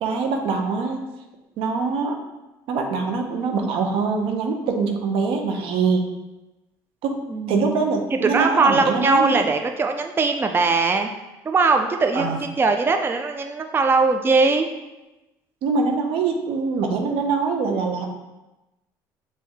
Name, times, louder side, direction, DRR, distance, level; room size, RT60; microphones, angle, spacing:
voice 1, 0.0-1.0 1.6-2.2 2.7-6.0 7.0-7.2 7.5-9.4 12.1-12.4 15.6-18.2, right 4 dB, 70° right, 3 dB, 0.6 m, -23 dB
voice 2, 7.3-7.8 8.3-11.1 11.5-14.7, right 4 dB, 25° right, 5 dB, 0.4 m, -20 dB
5.3 x 2.7 x 3.4 m, 1.0 s
supercardioid pair, 75°, 10 cm